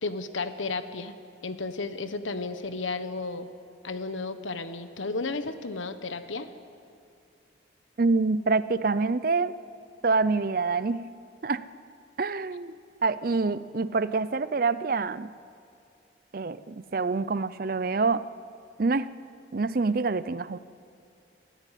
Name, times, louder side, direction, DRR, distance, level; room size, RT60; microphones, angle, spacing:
voice 1, 0.0-1.1 1.4-3.5 3.8-6.5, left 3 dB, 90° left, 10 dB, 1.2 m, -33 dB
voice 2, 8.0-9.5 10.0-11.1 11.4-11.7 12.2-15.3 16.3-18.2 18.8-19.1 19.5-20.6, right 4 dB, 50° right, 16 dB, 0.5 m, -26 dB
22.5 x 14.5 x 9.2 m, 2.4 s
head